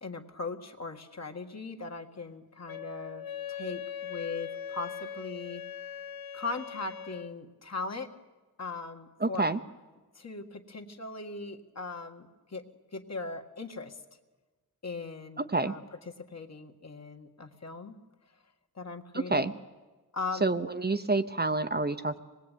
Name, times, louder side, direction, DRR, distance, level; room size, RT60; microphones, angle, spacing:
voice 1, 0.0-5.6 6.3-8.1 8.6-9.5 10.2-12.6 12.9-14.0 14.8-15.8 16.3-18.0 18.8-19.5 20.1-20.5 22.1-22.2, left 3 dB, 50° left, 5 dB, 1.9 m, -39 dB
Wind instrument woodwind instrument, 2.7-7.3, left 8 dB, 85° left, 0.8 m, -40 dB
voice 2, 9.2-9.6 15.4-15.7 19.1-19.5 20.4-22.2, right 3 dB, 30° right, 9 dB, 0.8 m, -28 dB
25.5 x 20.0 x 9.3 m, 1.3 s
wide cardioid pair, 125°, 35 cm